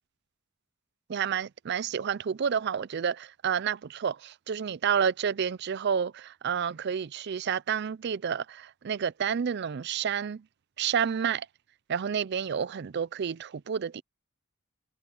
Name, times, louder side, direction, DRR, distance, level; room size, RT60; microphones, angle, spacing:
voice 1, 1.1-10.4 10.8-11.5 11.9-14.0, right 7 dB, 55° right, 0.4 m, -30 dB
head